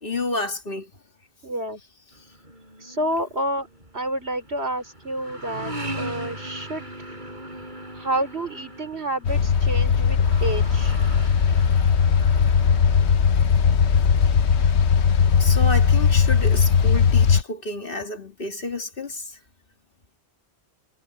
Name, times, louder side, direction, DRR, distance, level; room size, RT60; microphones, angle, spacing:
voice 1, 0.0-0.9 15.4-19.4, left 2 dB, 55° left, 2.6 m, -30 dB
voice 2, 1.4-1.8 2.8-3.7 3.9-7.2 7.9-11.0, right 1 dB, 80° right, 4.8 m, -29 dB
sound 1, 2.1-16.5, right 1 dB, 45° right, 8.1 m, -40 dB
sound 2, 9.2-17.4, left 6 dB, 85° left, 1.2 m, -18 dB
omnidirectional pair, 1.1 m